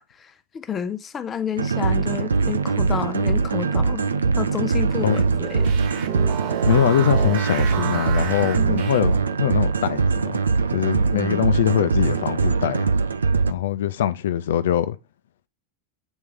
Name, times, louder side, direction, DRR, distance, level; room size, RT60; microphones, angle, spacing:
voice 1, 0.1-4.0 4.4-5.7 11.1-11.4, left 8 dB, 25° left, 0.8 m, -30 dB
sound 1, 1.6-13.5, right 4 dB, 90° right, 0.4 m, -22 dB
sound 2, 4.9-9.4, right 11 dB, 55° right, 1.2 m, -31 dB
voice 2, 6.7-10.4 10.7-12.9 13.5-15.0, left 10 dB, 70° left, 0.6 m, -22 dB
8.2 x 3.2 x 3.6 m
hypercardioid pair, 95°, 0 cm